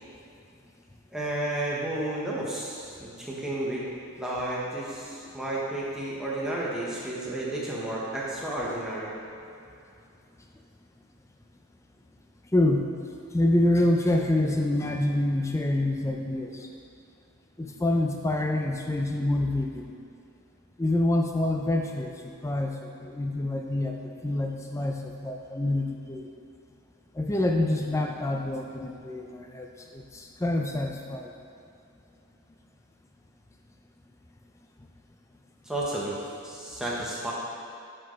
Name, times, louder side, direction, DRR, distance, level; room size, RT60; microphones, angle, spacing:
voice 1, 1.1-3.8 4.2-9.1 35.6-37.3, right 1 dB, 5° right, -6 dB, 1.0 m, -32 dB
voice 2, 12.5-12.9 13.3-16.7 17.6-19.9 20.8-26.3 27.2-31.3, left 1 dB, 15° left, 2 dB, 0.4 m, -27 dB
10.5 x 4.4 x 3.1 m, 2.6 s
head